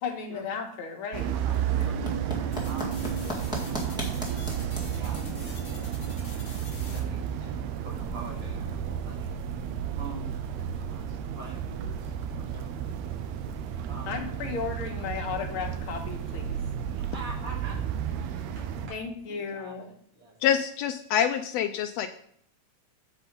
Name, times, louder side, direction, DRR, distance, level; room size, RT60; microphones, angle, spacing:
voice 1, 0.0-1.3 14.1-16.6 18.9-19.9, left 5 dB, 55° left, 3 dB, 1.7 m, -34 dB
sound 1, 1.1-18.9, right 8 dB, 80° right, 1.8 m, -32 dB
sound 2, 1.2-15.6, equal, ahead, 1.0 m, -43 dB
voice 2, 1.3-6.1 6.7-12.8 13.9-14.3 16.9-18.4 19.2-20.4, right 3 dB, 60° right, -5 dB, 4.1 m, -46 dB
sound 3, 2.5-7.0, left 3 dB, 35° left, 1.3 m, -47 dB
voice 3, 20.4-22.1, left 9 dB, 80° left, 9 dB, 1.5 m, -26 dB
8.3 x 4.8 x 5.3 m, 0.65 s
omnidirectional pair, 3.3 m